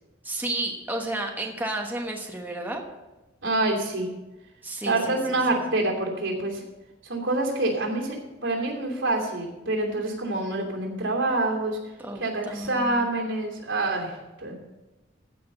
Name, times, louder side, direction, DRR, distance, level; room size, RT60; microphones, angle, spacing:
voice 1, 0.2-2.8 4.6-5.6 12.0-13.1, right 1 dB, 10° right, 1 dB, 1.2 m, -32 dB
voice 2, 3.4-4.1 4.8-6.6 7.0-11.8 12.2-14.5, right 2 dB, 85° right, 0 dB, 2.8 m, -26 dB
15.0 x 5.1 x 6.6 m, 1.1 s
head